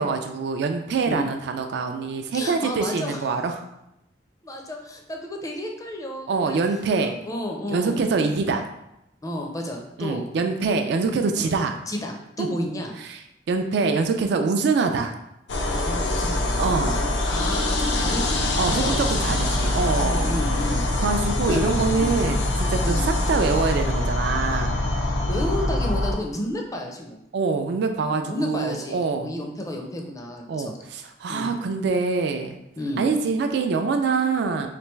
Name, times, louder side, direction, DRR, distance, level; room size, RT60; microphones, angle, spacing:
voice 1, 0.0-3.6 6.3-7.1 7.7-8.7 10.0-11.8 12.4-12.5 13.0-13.2 13.5-15.1 16.6-17.0 18.6-20.3 21.0-24.8 27.3-29.3 30.5-32.6 33.0-34.7, right 4 dB, 65° right, 5 dB, 0.3 m, -24 dB
voice 2, 2.3-3.2 4.4-6.6 7.0-8.1 9.2-10.3 11.4-11.6 11.9-12.9 15.7-19.8 20.0-20.9 21.5-21.6 21.9-22.1 22.8-23.1 25.3-27.2 28.1-30.8 31.3-31.5 32.8-33.1, left 1 dB, 20° left, 2 dB, 0.5 m, -32 dB
sound 1, 15.5-26.1, left 2 dB, 80° left, 0.6 m, -24 dB
3.3 x 3.3 x 3.1 m, 0.83 s
head